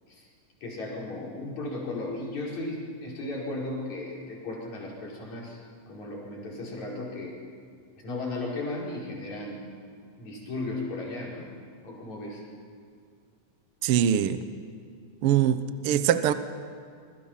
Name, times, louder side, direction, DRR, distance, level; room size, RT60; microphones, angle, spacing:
voice 1, 0.6-5.6 5.9-7.4 8.0-9.7 10.2-11.5 11.8-12.5, left 2 dB, 65° left, -4 dB, 6.3 m, -35 dB
voice 2, 13.8-14.4 15.2-15.6 15.8-16.3, right 10 dB, 65° right, 11 dB, 1.5 m, -22 dB
26.0 x 24.0 x 5.9 m, 2.3 s
omnidirectional pair, 3.5 m